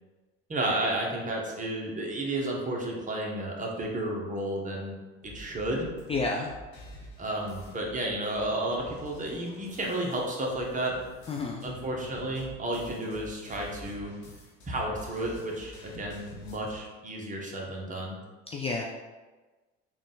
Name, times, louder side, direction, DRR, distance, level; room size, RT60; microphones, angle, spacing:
voice 1, 0.5-4.9 5.3-5.9 7.2-10.9 11.6-14.1 14.7-18.2, right 1 dB, 25° right, -1 dB, 1.0 m, -32 dB
sound 1, 5.2-16.8, equal, 90° left, 1.2 m, -48 dB
voice 2, 6.1-6.5 11.3-11.6 18.5-18.9, left 3 dB, 20° left, -1 dB, 0.4 m, -30 dB
3.7 x 2.5 x 3.8 m, 1.2 s
hypercardioid pair, 80°, 32 cm